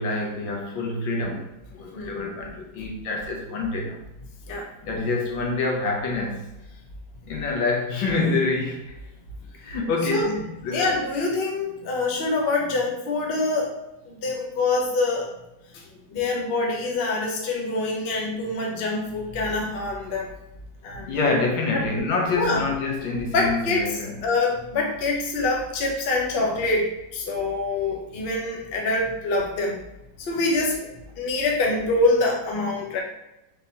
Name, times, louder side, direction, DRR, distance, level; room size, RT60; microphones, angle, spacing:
voice 1, 0.0-4.0 4.8-6.5 7.3-8.9 9.6-11.0 16.1-16.2 21.1-24.3, left 3 dB, 85° left, 1.6 m, -27 dB
voice 2, 10.7-13.7 14.0-15.3 16.1-20.3 20.8-21.4 21.7-21.8 22.3-22.6 23.3-23.9 24.2-29.7 30.2-30.9 31.2-33.0, left 2 dB, 50° left, 0.7 m, -25 dB
3.9 x 3.8 x 2.7 m
omnidirectional pair, 2.0 m